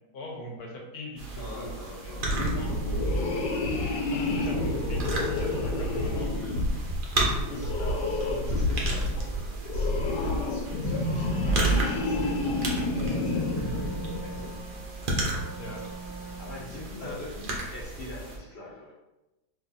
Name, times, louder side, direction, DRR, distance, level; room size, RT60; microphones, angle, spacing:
voice 1, 0.1-1.7 2.0-3.0 4.1-6.5 7.5-7.6 15.6-15.9 17.0-17.2, left 2 dB, 70° left, -1 dB, 1.1 m, -40 dB
sound 1, 1.2-18.4, right 2 dB, 65° right, 0.5 m, -34 dB
voice 2, 1.4-2.6 7.0-14.6 16.4-18.9, left 1 dB, 50° left, -5 dB, 0.8 m, -44 dB
sound 2, 2.1-14.6, left 2 dB, 90° left, 1.2 m, -29 dB
Wind instrument woodwind instrument, 10.9-16.8, right 5 dB, 90° right, 1.2 m, -42 dB
2.7 x 2.6 x 3.8 m, 0.98 s
omnidirectional pair, 1.8 m